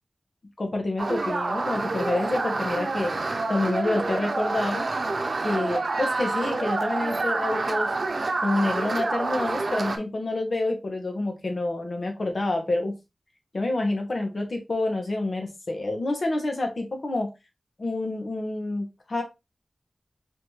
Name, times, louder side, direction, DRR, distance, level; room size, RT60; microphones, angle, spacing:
voice 1, 0.6-3.1 3.5-4.8 5.4-7.9 8.4-12.9 13.5-17.3 17.8-19.2, left 2 dB, 65° left, 3 dB, 1.3 m, -28 dB
sound 1, 1.0-10.0, right 3 dB, 75° right, 0.7 m, -28 dB
4.2 x 2.7 x 3.2 m, 0.23 s
cardioid pair, 45°, 0 cm